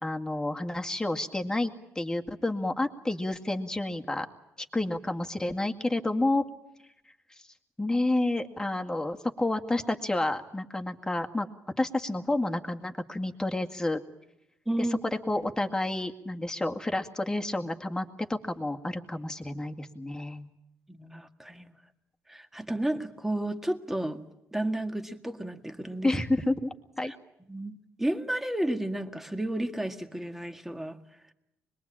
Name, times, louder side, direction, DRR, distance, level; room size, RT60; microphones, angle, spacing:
voice 1, 0.0-4.3 4.7-6.4 7.8-11.5 11.8-14.0 14.8-14.9 15.3-20.5 26.0-27.1, left 2 dB, 10° left, 4 dB, 2.0 m, -30 dB
voice 2, 14.7-15.0 20.9-21.7 22.3-24.2 24.5-26.1 27.0-27.1 27.5-31.0, right 1 dB, 5° right, 6 dB, 1.8 m, -32 dB
25.5 x 21.5 x 8.8 m, 0.83 s
cardioid pair, 115°, 6 cm